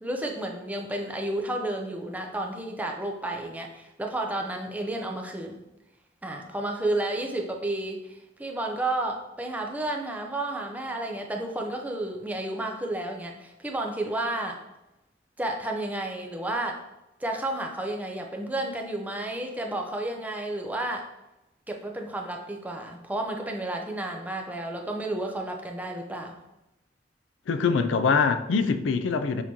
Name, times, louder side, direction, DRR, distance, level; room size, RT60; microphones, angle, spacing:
voice 1, 0.0-5.6 6.2-14.6 15.4-16.8 17.2-21.1 21.7-26.4, right 1 dB, 10° right, 2 dB, 0.5 m, -31 dB
voice 2, 27.5-29.4, left 5 dB, 75° left, 9 dB, 0.4 m, -23 dB
6.3 x 3.0 x 2.7 m, 0.93 s
head